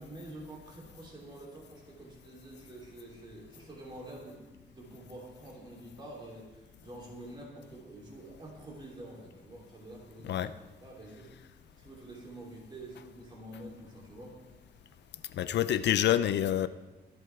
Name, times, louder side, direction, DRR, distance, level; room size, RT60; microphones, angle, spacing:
voice 1, 0.0-4.4 4.7-10.5 10.8-11.3 11.8-14.4, right 1 dB, 25° right, -3 dB, 3.3 m, -47 dB
voice 2, 15.3-16.7, left 11 dB, 70° left, 14 dB, 0.4 m, -27 dB
23.0 x 7.8 x 3.4 m, 1.1 s
wide cardioid pair, 155°, 18 cm